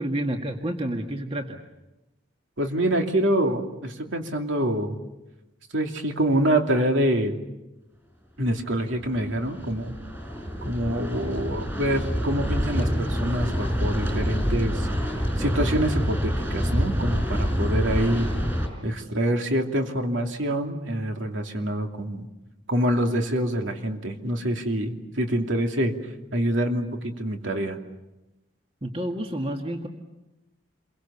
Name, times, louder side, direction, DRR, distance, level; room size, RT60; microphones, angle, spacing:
voice 1, 0.0-1.6 28.8-29.9, right 1 dB, 30° right, 3 dB, 1.9 m, -29 dB
voice 2, 2.6-5.0 5.7-7.4 8.4-10.0 10.6-14.9 15.4-18.3 18.8-22.3 22.7-25.9 26.3-27.8, right 1 dB, 70° right, 3 dB, 2.8 m, -26 dB
sound 1, 8.6-18.7, equal, 10° right, 5.2 m, -27 dB
29.0 x 23.0 x 7.1 m, 1.0 s
head